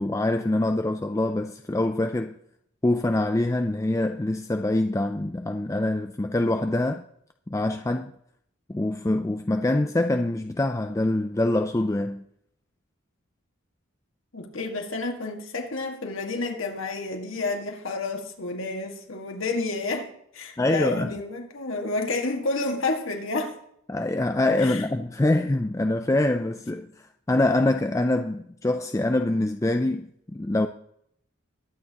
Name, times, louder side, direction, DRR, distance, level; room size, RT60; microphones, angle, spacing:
voice 1, 0.0-2.4 2.8-7.0 7.5-8.1 8.7-12.2 20.6-21.1 23.9-30.7, left 2 dB, 15° left, 0.4 m, -25 dB
voice 2, 14.3-23.6 24.6-24.8, left 3 dB, 75° left, 1.8 m, -30 dB
21.5 x 8.8 x 2.9 m
head